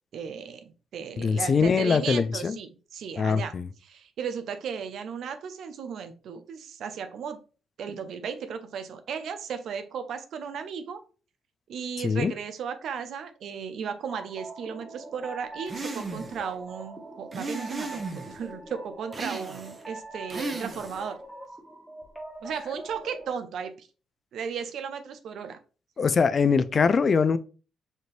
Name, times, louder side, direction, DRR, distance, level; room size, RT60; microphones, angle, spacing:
voice 1, 0.1-3.5 3.8-7.4 7.8-11.0 11.7-21.2 22.4-23.9 24.3-25.6, right 7 dB, 70° right, 0.5 m, -35 dB
voice 2, 1.2-2.6 3.2-3.7 12.0-12.3 26.0-27.4, left 5 dB, 40° left, 0.3 m, -23 dB
sound 1, 14.1-23.3, right 1 dB, ahead, 1.2 m, -43 dB
sound 2, 15.7-16.4 17.3-18.4 19.1-19.8 20.3-21.1, right 3 dB, 25° right, 0.8 m, -35 dB
4.3 x 2.6 x 3.1 m
cardioid pair, 90°, 0 cm